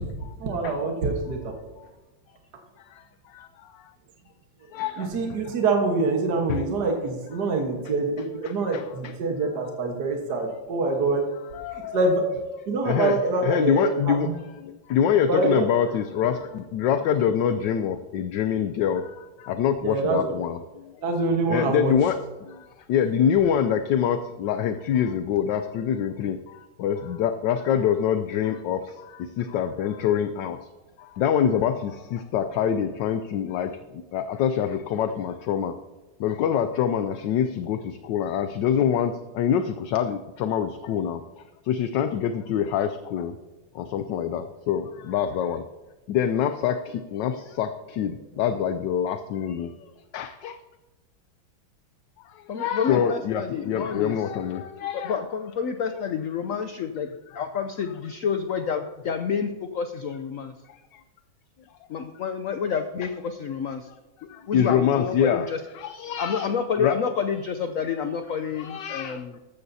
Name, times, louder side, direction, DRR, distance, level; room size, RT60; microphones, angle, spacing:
voice 1, 0.4-1.5 5.0-11.3 11.7-12.3 12.7-14.3 15.3-15.7 19.8-20.4 21.0-21.9, right 3 dB, 55° right, 2 dB, 1.8 m, -25 dB
voice 2, 2.8-3.9 4.7-5.5 6.5-6.6 7.9-8.0 8.4-9.1 11.5-12.0 12.8-14.3 14.6-20.9 21.5-30.7 31.0-33.8 34.1-35.8 36.2-41.2 41.6-43.4 43.7-45.6 46.1-49.7 50.1-50.6 52.3-55.2 57.3-57.4 60.7-61.0 64.3-65.5 65.7-67.0 68.5-69.2, left 8 dB, 70° left, 9 dB, 1.2 m, -26 dB
voice 3, 5.1-5.4 52.5-54.2 54.9-57.1 57.3-60.5 61.9-63.9 64.5-65.6 66.2-69.4, left 6 dB, 90° left, 8 dB, 0.7 m, -29 dB
15.0 x 12.5 x 2.8 m, 1.1 s
omnidirectional pair, 2.2 m